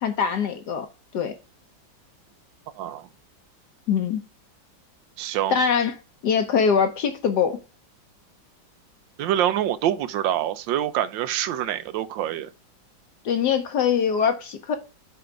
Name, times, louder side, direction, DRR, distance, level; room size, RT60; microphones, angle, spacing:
voice 1, 0.0-0.9 1.1-1.3 3.9-4.2 5.5-5.9 6.2-7.6 13.2-14.7, left 7 dB, 65° left, 1.2 m, -22 dB
voice 2, 2.8-3.1 5.2-5.6 9.2-12.5, right 11 dB, 80° right, 1.3 m, -25 dB
7.8 x 3.8 x 5.0 m
omnidirectional pair, 2.1 m